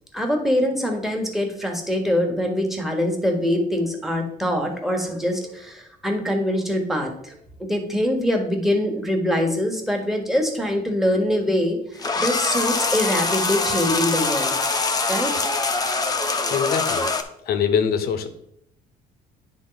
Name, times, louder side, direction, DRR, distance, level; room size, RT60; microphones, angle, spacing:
voice 1, 0.1-14.5 15.1-15.3, left 1 dB, ahead, 3 dB, 1.3 m, -24 dB
sound 1, 12.0-17.2, left 3 dB, 20° left, 0.7 m, -23 dB
voice 2, 16.5-17.1 17.5-18.3, left 7 dB, 65° left, 9 dB, 0.9 m, -23 dB
9.7 x 3.7 x 3.9 m, 0.73 s
cardioid pair, 110°, 17 cm